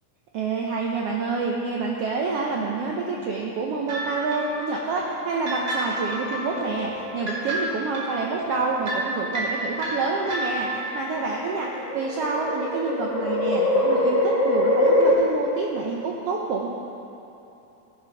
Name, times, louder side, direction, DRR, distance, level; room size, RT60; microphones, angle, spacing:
voice 1, 0.3-10.7 10.9-16.7, right 4 dB, 85° right, -1 dB, 1.3 m, -28 dB
sound 1, 3.9-11.0, right 1 dB, 40° right, 2.5 m, -31 dB
sound 2, 6.5-7.4 8.5-9.0 9.9-15.1, left 1 dB, 45° left, 1.5 m, -23 dB
15.5 x 5.2 x 5.6 m, 3.0 s
omnidirectional pair, 3.6 m